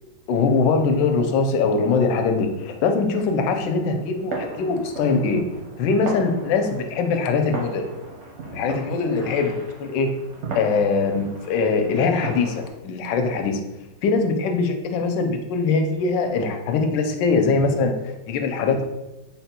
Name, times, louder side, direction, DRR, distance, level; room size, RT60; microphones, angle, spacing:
voice 1, 0.3-5.4 5.8-7.9 8.5-9.5 9.8-10.1 10.5-13.6 14.0-17.9 18.3-18.8, left 4 dB, 80° left, 5 dB, 1.2 m, -22 dB
sound 1, 0.8-12.7, right 3 dB, 65° right, 0.7 m, -38 dB
3.9 x 2.2 x 4.2 m, 0.99 s
omnidirectional pair, 2.0 m